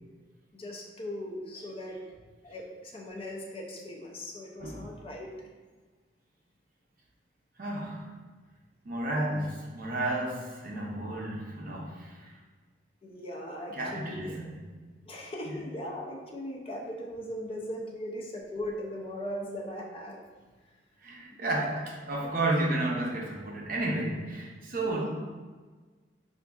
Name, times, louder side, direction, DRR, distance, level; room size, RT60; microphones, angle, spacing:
voice 1, 0.5-2.0 2.4-5.4 11.0-11.1 13.0-14.5 15.1-20.2 21.3-21.6 22.2-22.3 24.8-25.1, left 1 dB, 30° left, -1 dB, 0.4 m, -39 dB
voice 2, 7.6-8.1 8.8-12.3 13.8-14.6 21.0-25.1, right 2 dB, 50° right, -1 dB, 0.6 m, -32 dB
4.8 x 2.5 x 2.3 m, 1.4 s
head